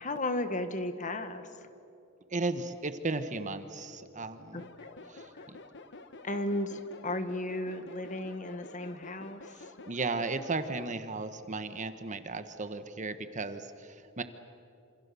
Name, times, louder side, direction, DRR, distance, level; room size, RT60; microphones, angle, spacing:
voice 1, 0.0-1.5 4.5-5.0 5.3-5.5 6.2-9.6, left 1 dB, 35° left, 9 dB, 1.5 m, -35 dB
voice 2, 2.3-4.6 5.1-5.6 9.9-14.2, right 3 dB, 35° right, 10 dB, 1.2 m, -35 dB
sound 1, 4.6-10.9, left 3 dB, 60° left, 1.3 m, -49 dB
27.5 x 27.0 x 6.9 m, 2.7 s
head